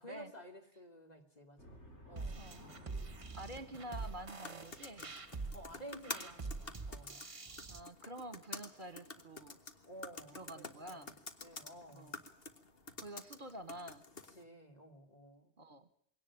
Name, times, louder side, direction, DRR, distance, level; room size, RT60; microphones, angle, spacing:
voice 1, 0.0-1.8 2.1-2.5 5.5-7.2 9.8-11.1 11.4-12.2 14.3-15.5, right 1 dB, 35° left, 3 dB, 3.3 m, -53 dB
sound 1, 1.6-7.0, equal, 85° left, 7.1 m, -58 dB
sound 2, 2.2-7.8, right 3 dB, 30° right, 1.1 m, -45 dB
voice 2, 3.3-5.1 7.7-9.6 10.3-11.1 11.9-12.2 13.0-14.0 15.6-15.9, right 1 dB, 50° right, 11 dB, 1.6 m, -48 dB
sound 3, 3.9-14.4, left 3 dB, 55° left, 1.8 m, -50 dB
22.5 x 18.0 x 8.7 m, 0.67 s
omnidirectional pair, 1.2 m